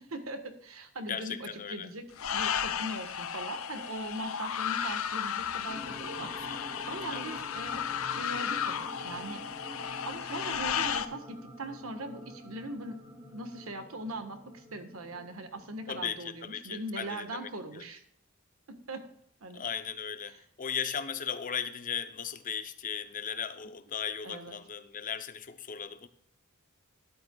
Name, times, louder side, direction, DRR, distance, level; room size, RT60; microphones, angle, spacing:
voice 1, 0.0-2.1 2.3-9.4 10.0-13.0 13.3-18.0 18.7-19.0 19.4-19.6 20.3-20.4 24.2-24.6, right 1 dB, 70° right, 7 dB, 1.4 m, -40 dB
voice 2, 1.1-1.9 6.3-6.7 7.1-7.3 15.9-17.8 19.5-26.1, left 7 dB, 40° left, 10 dB, 0.7 m, -37 dB
sound 1, 2.2-11.1, left 8 dB, 70° left, 0.7 m, -34 dB
sound 2, 5.7-16.0, equal, 25° right, 3.2 m, -48 dB
13.0 x 11.0 x 2.3 m, 0.69 s
head